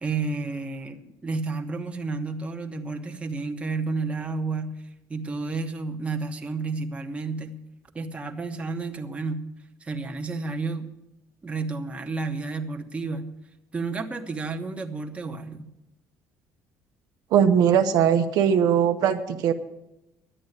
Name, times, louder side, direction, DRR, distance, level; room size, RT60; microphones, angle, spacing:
voice 1, 0.0-4.8 5.1-7.6 7.9-9.4 9.8-10.9 11.4-13.3 13.7-15.7, right 3 dB, 20° right, 4 dB, 1.2 m, -31 dB
voice 2, 17.3-19.5, right 8 dB, 70° right, 6 dB, 1.0 m, -20 dB
11.5 x 8.5 x 9.3 m, 0.91 s
cardioid pair, 120°, 7 cm